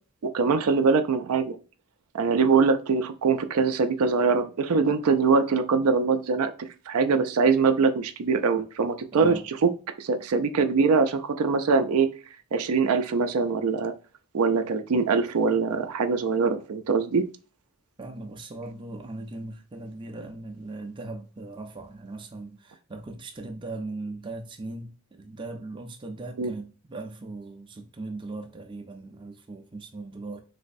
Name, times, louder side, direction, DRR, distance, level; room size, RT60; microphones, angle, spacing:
voice 1, 0.3-1.6 2.1-6.5 6.9-9.7 10.0-12.1 12.5-13.9 14.3-17.3 26.4-26.5, right 5 dB, 80° right, 0.4 m, -23 dB
voice 2, 9.1-9.4 18.0-30.4, right 2 dB, 20° right, 0.4 m, -38 dB
3.3 x 3.0 x 2.5 m
head